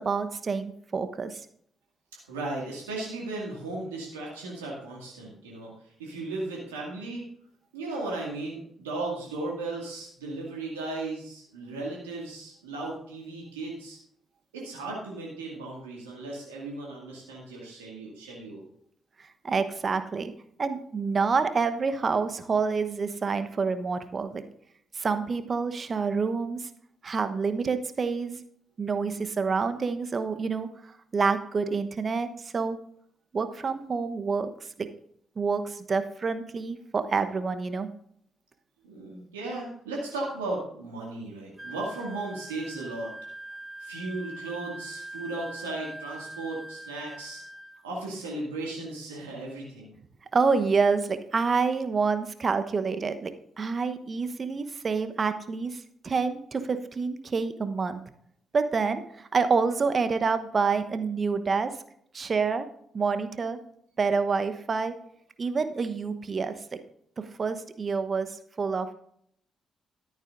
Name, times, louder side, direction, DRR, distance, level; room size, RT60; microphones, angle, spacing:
voice 1, 0.0-1.4 19.4-20.3 20.6-24.4 24.9-26.7 27.0-28.4 28.8-32.8 33.3-34.5 34.8-34.9 35.4-37.9 50.3-58.0 58.5-61.7 62.1-62.7 62.9-63.6 64.0-64.9 65.4-66.8 67.2-68.3 68.6-68.9, right 5 dB, 45° right, 9 dB, 1.0 m, -27 dB
voice 2, 2.3-7.3 7.7-14.0 14.5-18.6 38.8-43.1 43.8-47.4 47.8-49.9, right 2 dB, 90° right, -3 dB, 2.1 m, -36 dB
Wind instrument woodwind instrument, 41.6-47.8, right 1 dB, 10° right, 1.0 m, -42 dB
13.0 x 10.0 x 2.6 m, 0.67 s
hypercardioid pair, 40°, 0 cm